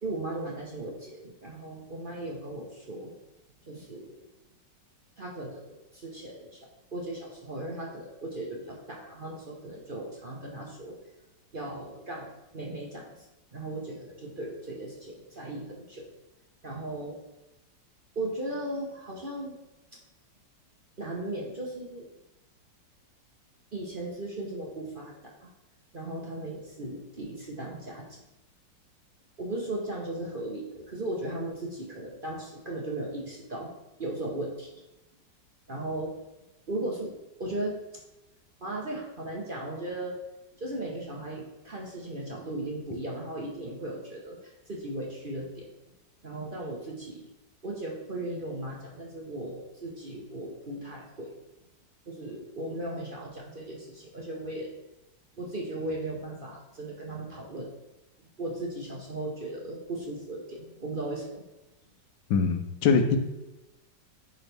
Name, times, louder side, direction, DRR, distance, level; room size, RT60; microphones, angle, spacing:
voice 1, 0.0-3.1 3.7-4.2 5.2-11.0 11.5-13.1 13.5-16.1 16.6-17.2 18.1-19.6 21.0-22.1 23.7-25.1 25.4-25.5 25.9-28.2 29.4-33.7 34.0-34.8 35.7-36.1 36.7-37.1 37.4-37.8 38.6-40.1 40.6-45.7 46.2-47.3 47.6-51.3 52.1-54.7 55.4-57.7 58.4-61.4, right 1 dB, 40° right, -2 dB, 0.9 m, -37 dB
voice 2, 62.3-63.2, left 5 dB, 80° left, 6 dB, 1.4 m, -23 dB
10.5 x 4.0 x 3.4 m, 0.97 s
omnidirectional pair, 1.9 m